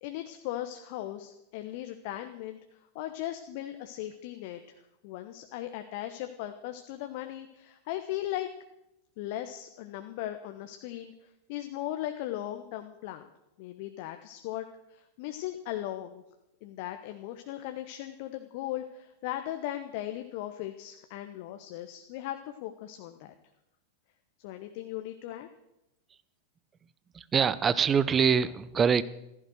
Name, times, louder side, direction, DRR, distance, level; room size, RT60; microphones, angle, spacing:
voice 1, 0.0-2.6 2.9-4.7 5.0-8.5 9.2-11.1 11.5-13.3 13.6-14.6 14.9-16.2 16.6-23.3 24.4-25.5, left 13 dB, 50° left, 7 dB, 1.1 m, -38 dB
voice 2, 27.1-29.0, right 7 dB, 20° right, 17 dB, 0.8 m, -24 dB
15.0 x 14.5 x 6.4 m, 0.89 s
figure-of-eight pair, 90°, 0 cm